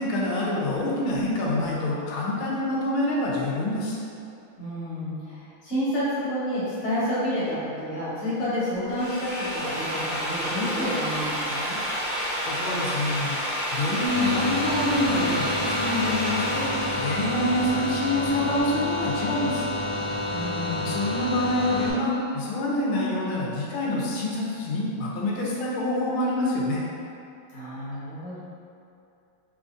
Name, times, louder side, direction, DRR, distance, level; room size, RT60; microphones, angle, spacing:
voice 1, 0.0-4.0 12.4-13.4 13.7-16.7 16.9-19.7 20.8-26.8, left 1 dB, 85° left, -4 dB, 1.4 m, -26 dB
voice 2, 4.6-11.8 20.3-21.0 27.5-28.4, equal, 40° left, -11 dB, 1.2 m, -29 dB
Drill, 8.8-18.6, equal, 55° right, 0.8 m, -30 dB
sound 1, 14.1-21.9, left 2 dB, 65° left, 1.3 m, -29 dB
3.9 x 2.4 x 2.5 m, 2.6 s
omnidirectional pair, 2.3 m